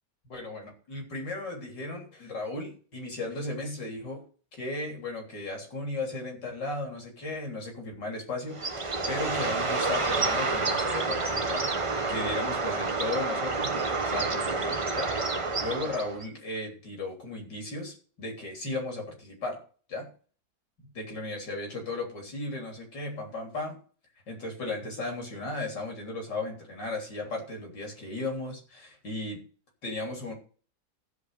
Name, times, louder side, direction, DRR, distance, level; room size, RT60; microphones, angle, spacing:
voice 1, 0.2-4.2 4.6-15.1 15.6-19.6 19.9-20.1 20.9-23.8 24.3-29.4 29.8-30.3, left 2 dB, 70° left, 1 dB, 4.1 m, -36 dB
Bird, 8.5-16.3, right 3 dB, 25° right, 0.7 m, -29 dB
15.0 x 5.2 x 6.7 m, 0.41 s
omnidirectional pair, 2.0 m